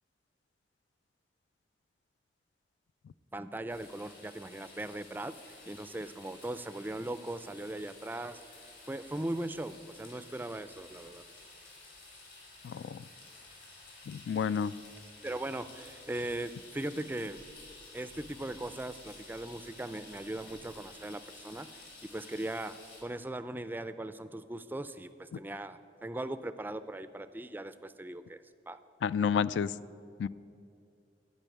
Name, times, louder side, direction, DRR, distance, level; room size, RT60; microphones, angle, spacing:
voice 1, 3.3-5.3 5.7-8.4 8.9-11.2 15.2-17.4 17.9-21.8 22.1-28.8, right 1 dB, 10° right, 12 dB, 0.3 m, -39 dB
sound 1, 3.7-23.0, left 3 dB, 60° left, 3.3 m, -53 dB
voice 2, 12.6-13.0 14.1-14.7 29.0-29.7 30.2-30.3, left 7 dB, 90° left, 17 dB, 0.3 m, -30 dB
12.5 x 5.4 x 8.4 m, 2.5 s
head